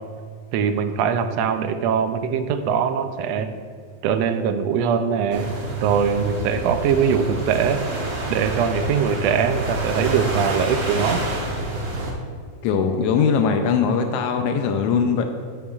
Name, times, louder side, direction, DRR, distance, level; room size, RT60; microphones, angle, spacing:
voice 1, 0.5-3.6 4.0-5.5 5.8-7.8 8.3-11.2, right 7 dB, 80° right, 8 dB, 1.5 m, -22 dB
sound 1, 5.3-12.1, right 2 dB, 55° right, 1.0 m, -28 dB
voice 2, 12.6-15.3, left 6 dB, 85° left, 5 dB, 1.4 m, -20 dB
15.5 x 5.7 x 2.4 m, 2.1 s
omnidirectional pair, 3.3 m